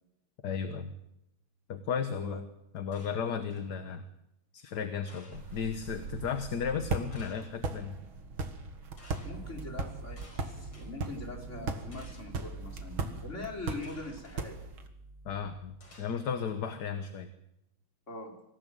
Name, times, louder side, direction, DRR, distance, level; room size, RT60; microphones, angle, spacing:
voice 1, 0.4-0.9 1.7-2.4 2.7-4.1 4.5-8.0 15.2-17.3, left 6 dB, 55° left, 8 dB, 1.7 m, -34 dB
voice 2, 2.1-2.4 3.2-3.4 9.2-14.6 18.1-18.4, left 2 dB, 35° left, 1 dB, 4.2 m, -42 dB
sound 1, 2.9-3.7 5.1-5.7 7.1-7.7 9.0-9.3 10.2-10.9 11.9-12.4 13.8-14.4 15.8-16.5, left 2 dB, 80° left, 6.1 m, -56 dB
sound 2, 5.3-14.9, right 4 dB, 75° right, 2.6 m, -39 dB
sound 3, 9.2-16.0, right 3 dB, 35° right, 1.1 m, -48 dB
25.5 x 16.0 x 7.8 m, 0.85 s
omnidirectional pair, 2.3 m